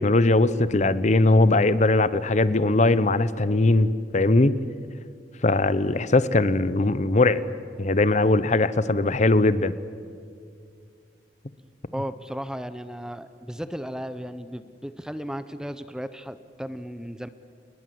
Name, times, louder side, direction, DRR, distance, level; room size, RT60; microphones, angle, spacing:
voice 1, 0.0-4.5 5.4-7.4 7.8-9.7, left 2 dB, 40° left, 16 dB, 0.8 m, -20 dB
voice 2, 11.9-17.3, equal, 5° right, 12 dB, 0.7 m, -35 dB
29.0 x 20.5 x 7.8 m, 2.3 s
head